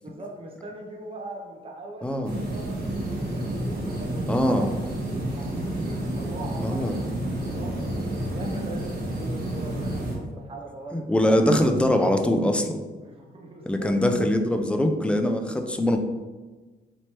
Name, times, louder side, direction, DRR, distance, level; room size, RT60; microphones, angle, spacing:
voice 1, 0.0-4.9 5.3-8.0 8.3-11.8 12.0-12.1 13.0-13.9 14.2-14.3, right 2 dB, 30° right, 0 dB, 0.8 m, -41 dB
voice 2, 2.0-2.3 4.3-4.7 6.6-7.0 7.8-7.9 10.9-12.8 13.7-16.0, left 1 dB, 5° left, 5 dB, 0.3 m, -22 dB
sound 1, 2.2-10.2, right 1 dB, 55° right, 1.2 m, -30 dB
4.3 x 3.1 x 3.0 m, 1.3 s
cardioid pair, 120°, 19 cm